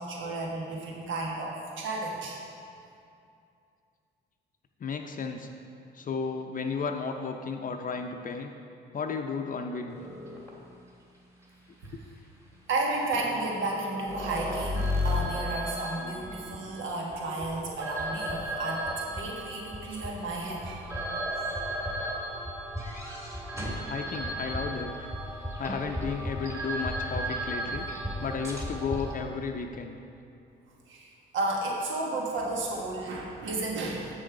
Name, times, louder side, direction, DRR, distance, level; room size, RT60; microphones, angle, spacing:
voice 1, 0.0-2.4 11.8-12.0 12.7-20.8 30.9-34.1, right 2 dB, 75° right, -2 dB, 1.3 m, -33 dB
voice 2, 4.8-5.5 5.9-8.5 8.9-10.0 11.9-12.0 23.8-25.1 25.6-27.8 28.2-30.0, left 5 dB, 45° left, 4 dB, 0.6 m, -33 dB
sound 1, 9.9-10.5 11.8-11.9 13.1-29.1, equal, 15° right, 1.8 m, -34 dB
7.5 x 6.4 x 4.8 m, 2.5 s
cardioid pair, 90°, 20 cm